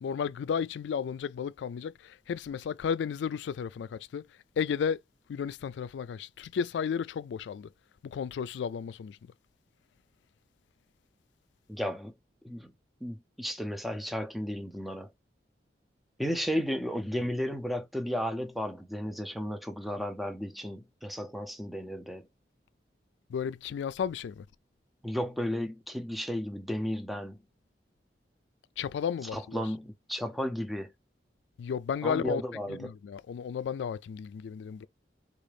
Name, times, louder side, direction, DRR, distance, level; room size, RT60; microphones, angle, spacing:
voice 1, 0.0-4.2 4.6-5.0 5.3-7.7 8.0-9.2 23.3-24.4 28.8-29.6 31.6-32.4 32.7-34.9, left 7 dB, 90° left, 0.3 m, -33 dB
voice 2, 11.7-12.1 12.4-12.7 13.0-15.1 16.2-22.3 25.0-27.4 29.2-30.9 32.0-32.9, equal, ahead, 0.4 m, -34 dB
3.7 x 2.4 x 3.2 m
head